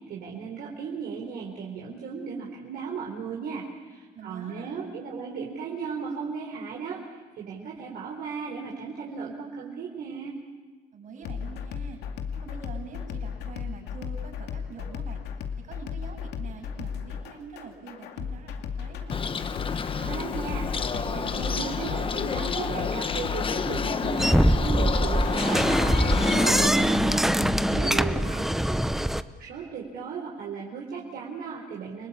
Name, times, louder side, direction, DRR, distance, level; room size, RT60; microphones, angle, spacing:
voice 1, 0.0-10.4 20.0-28.4 29.4-32.1, right 5 dB, 70° right, -2 dB, 4.2 m, -36 dB
voice 2, 4.1-4.8 10.9-12.0 12.3-19.4 27.9-28.7, right 5 dB, 50° right, 3 dB, 7.6 m, -45 dB
sound 1, 11.2-28.0, left 7 dB, 80° left, 2.3 m, -35 dB
Bird, 19.1-26.7, left 5 dB, 30° left, 1.2 m, -30 dB
sound 2, 24.2-29.2, equal, ahead, 0.8 m, -23 dB
30.0 x 19.5 x 8.7 m, 1.3 s
cardioid pair, 110°, 17 cm